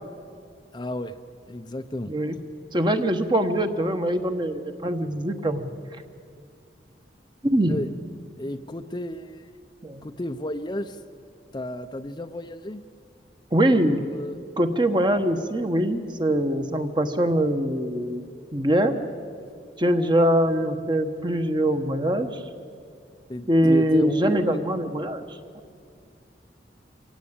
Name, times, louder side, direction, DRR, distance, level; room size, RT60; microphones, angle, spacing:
voice 1, 0.7-1.1 1.5-2.1 7.7-7.9 8.4-9.5 10.0-11.0 11.5-12.8 13.7-14.4 23.3-24.6, left 1 dB, 25° left, 8 dB, 0.6 m, -33 dB
voice 2, 2.7-5.7 7.4-7.8 9.8-10.0 13.5-14.0 14.6-18.2 18.5-18.9 19.8-22.4 23.5-25.2, right 1 dB, 25° right, 7 dB, 1.2 m, -23 dB
25.0 x 16.5 x 8.7 m, 2.3 s
head